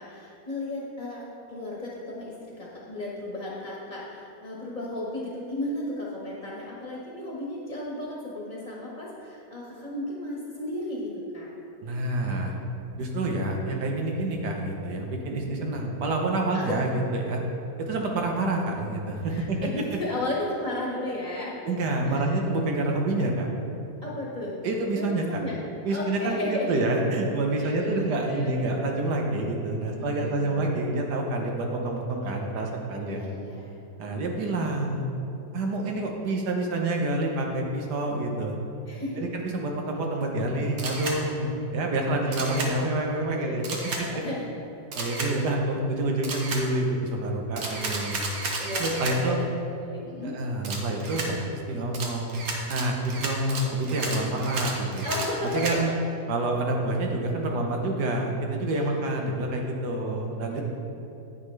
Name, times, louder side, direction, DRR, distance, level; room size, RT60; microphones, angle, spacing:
voice 1, 0.0-11.5 15.5-15.7 16.5-16.8 19.3-21.5 22.1-22.4 24.0-24.6 25.0-25.6 25.9-26.8 27.6-28.5 29.9-30.6 33.1-33.7 38.9-39.2 42.3-42.6 43.3-44.5 45.1-45.2 48.6-49.4 49.7-50.4 55.0-56.0 58.8-58.9 60.5-60.6, left 1 dB, 25° left, -5 dB, 1.3 m, -34 dB
voice 2, 11.8-12.5 13.0-17.4 17.8-19.6 21.6-23.5 24.6-25.4 25.8-33.2 34.0-35.1 35.5-38.6 39.2-43.6 44.0-44.2 44.9-48.2 48.8-49.4 50.2-52.3 52.7-55.1 55.5-55.9 56.3-60.6, right 2 dB, 85° right, 1 dB, 1.6 m, -27 dB
Camera, 40.8-41.2 42.3-42.7 43.6-44.0 44.9-45.3 46.2-46.6 47.6-49.2 50.6-51.3 51.9-55.8, right 3 dB, 65° right, 1.4 m, -32 dB
9.6 x 8.6 x 3.3 m, 2.9 s
omnidirectional pair, 1.7 m